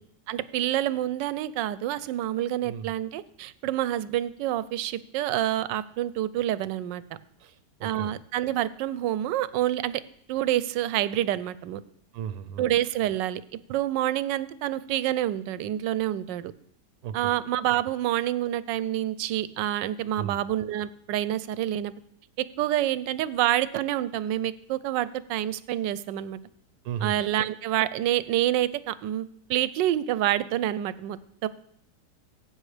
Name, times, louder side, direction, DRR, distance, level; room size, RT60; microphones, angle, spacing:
voice 1, 0.3-7.0 7.8-10.0 10.3-11.8 12.6-13.4 13.7-16.5 17.1-21.9 22.6-26.4 27.0-31.5, right 13 dB, 90° right, 16 dB, 1.2 m, -27 dB
voice 2, 7.4-8.1 12.1-12.7 17.0-17.1 20.2-20.4 26.8-27.1, right 9 dB, 70° right, 12 dB, 1.1 m, -35 dB
15.5 x 8.3 x 3.3 m, 0.71 s
omnidirectional pair, 1.9 m